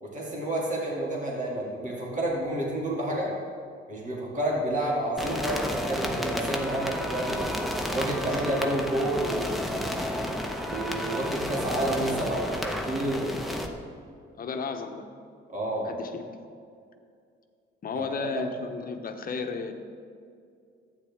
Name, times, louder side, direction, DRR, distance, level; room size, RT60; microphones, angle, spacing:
voice 1, 0.0-3.3 3.9-7.5 7.9-9.6 10.7-13.4 15.5-15.9 17.9-18.4, right 1 dB, 40° right, -4 dB, 2.4 m, -30 dB
sound 1, 5.2-13.7, equal, ahead, 0.9 m, -31 dB
voice 2, 14.4-15.1 15.8-16.5 17.8-19.7, left 4 dB, 45° left, 6 dB, 0.9 m, -34 dB
11.5 x 8.9 x 3.6 m, 2.3 s
cardioid pair, 90°, 20 cm